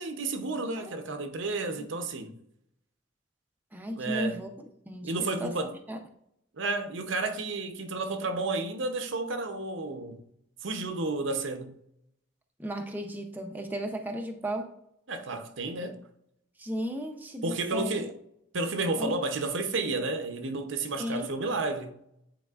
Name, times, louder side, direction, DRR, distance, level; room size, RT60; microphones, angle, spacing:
voice 1, 0.0-2.3 4.0-4.4 5.0-5.7 6.6-10.2 10.6-11.7 15.1-16.0 17.4-18.1 18.5-21.9, right 3 dB, 75° right, 0.7 m, -31 dB
voice 2, 3.7-4.5 4.9-5.1 5.4-5.6 5.9-6.0 12.6-14.7 16.6-17.9 19.0-19.2 21.0-21.4, equal, 10° right, 0.6 m, -35 dB
9.3 x 4.2 x 2.4 m
head